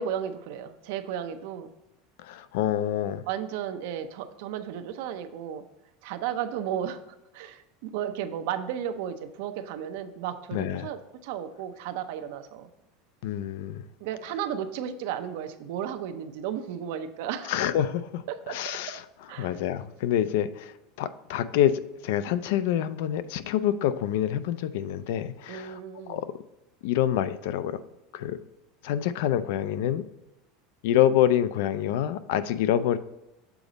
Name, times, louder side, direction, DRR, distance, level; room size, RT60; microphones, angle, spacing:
voice 1, 0.0-1.7 3.3-5.6 6.0-7.0 7.3-12.7 13.4-13.5 14.0-17.5 18.3-18.6 19.3-19.6 25.5-26.2, right 9 dB, 65° right, 9 dB, 0.6 m, -34 dB
voice 2, 2.2-3.2 10.5-10.9 13.2-13.8 17.5-18.2 18.5-19.0 19.4-25.8 26.1-26.3 26.8-27.8 28.1-28.4 28.8-30.0 30.8-33.0, left 11 dB, 65° left, 13 dB, 0.4 m, -26 dB
7.0 x 4.0 x 5.0 m, 0.94 s
supercardioid pair, 165°, 0 cm